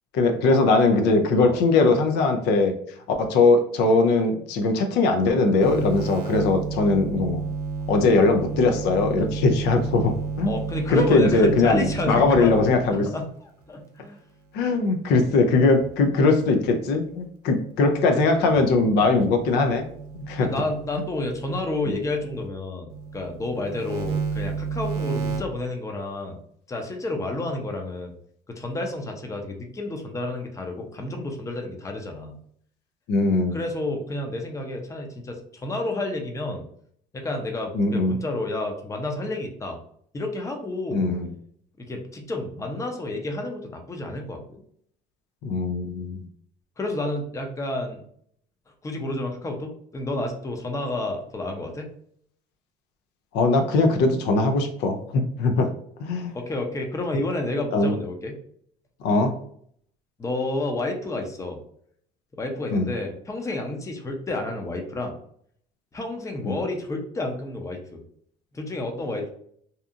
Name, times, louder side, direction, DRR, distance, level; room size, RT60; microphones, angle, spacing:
voice 1, 0.1-2.7 3.2-7.4 7.9-10.5 10.9-13.1 14.5-19.8 20.1-20.5 33.1-33.6 37.7-38.2 40.9-41.3 45.4-46.3 53.3-55.7 56.0-56.3 57.7-57.9 59.0-59.4 62.7-62.9 66.4-66.5, left 3 dB, 85° left, 5 dB, 0.5 m, -20 dB
sound 1, 5.6-13.1 15.1-17.2 17.7-22.5 22.9-25.4, right 5 dB, 75° right, 0.5 m, -32 dB
voice 2, 10.5-12.5 12.9-14.2 18.5-18.7 20.4-26.4 26.7-28.1 28.5-32.4 33.5-36.6 37.1-39.8 40.1-41.0 41.8-44.6 46.8-48.0 48.8-51.9 56.3-58.3 60.2-61.6 62.3-65.2 65.9-68.0 68.5-69.3, left 2 dB, 20° left, 3 dB, 0.5 m, -30 dB
2.7 x 2.4 x 2.4 m, 0.64 s
cardioid pair, 110°, 17 cm